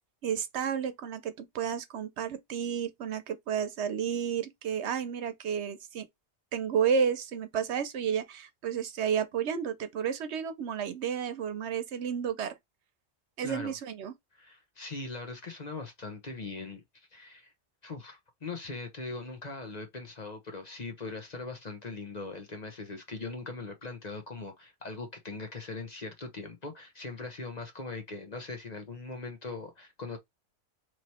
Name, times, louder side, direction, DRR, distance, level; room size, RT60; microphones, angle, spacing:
voice 1, 0.2-6.1 6.5-12.5 13.4-14.1, right 7 dB, 75° right, 1.0 m, -31 dB
voice 2, 13.4-13.7 14.3-17.5 17.8-30.2, left 3 dB, 40° left, 1.0 m, -40 dB
3.2 x 3.0 x 4.2 m
omnidirectional pair, 1.2 m